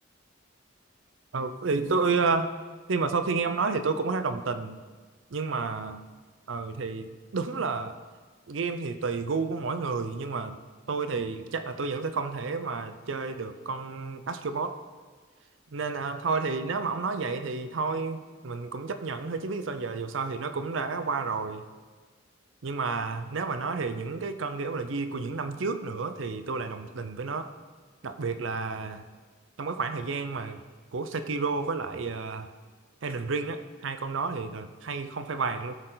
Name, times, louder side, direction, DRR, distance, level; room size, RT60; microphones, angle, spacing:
voice 1, 1.3-2.5 2.9-4.8 5.3-6.0 6.5-8.0 8.5-10.6 10.9-14.8 15.7-21.6 22.6-27.5 28.0-29.0 29.6-30.6 30.9-32.5 33.0-35.7, right 4 dB, 80° right, 10 dB, 0.6 m, -30 dB
14.5 x 6.6 x 4.0 m, 1.4 s
head